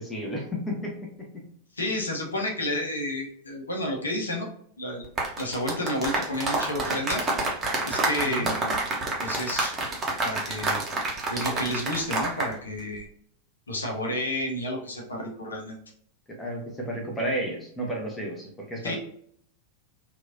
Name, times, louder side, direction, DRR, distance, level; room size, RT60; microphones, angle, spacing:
voice 1, 0.0-1.4 8.2-8.5 16.3-19.0, right 1 dB, 15° left, 0 dB, 0.8 m, -32 dB
voice 2, 1.7-4.5 4.8-5.1 5.4-7.3 7.8-8.8 9.2-9.7 10.2-10.8 11.3-13.1 13.7-15.8 18.8-19.0, left 1 dB, 75° left, -1 dB, 0.7 m, -31 dB
sound 1, 5.0-12.5 12.8-13.0, right 2 dB, 25° right, 0.8 m, -28 dB
3.0 x 2.4 x 2.5 m, 0.64 s
figure-of-eight pair, 90°, 0 cm